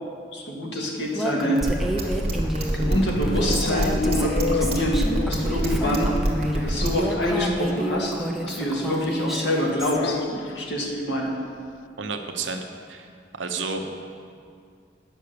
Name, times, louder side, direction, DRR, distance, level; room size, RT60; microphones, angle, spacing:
voice 1, 0.3-1.6 2.7-6.1 6.5-11.3, equal, 70° left, -1 dB, 1.8 m, -26 dB
Female speech woman speaking, 1.1-10.0, right 1 dB, ahead, 0.6 m, -30 dB
sound 1, 1.6-7.0, right 1 dB, 30° right, 1.7 m, -24 dB
sound 2, 2.6-5.6 5.9-6.0 6.3-6.4 6.7-6.8 8.0-8.1 9.8-10.7, left 7 dB, 90° left, 0.3 m, -32 dB
voice 2, 12.0-13.1 13.4-13.9, right 4 dB, 85° right, 5 dB, 0.9 m, -31 dB
9.5 x 6.5 x 6.8 m, 2.3 s
head